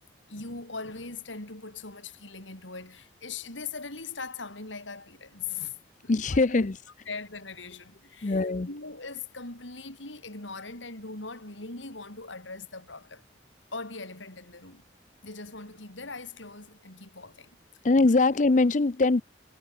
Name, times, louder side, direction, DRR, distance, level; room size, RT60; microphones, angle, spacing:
voice 1, 0.3-5.8 6.0-6.7 7.1-13.2 13.7-14.8 15.2-17.6, left 4 dB, 85° left, 5.8 m, -40 dB
voice 2, 6.1-6.8 8.2-8.7 17.8-19.2, left 3 dB, 40° left, 0.6 m, -22 dB
head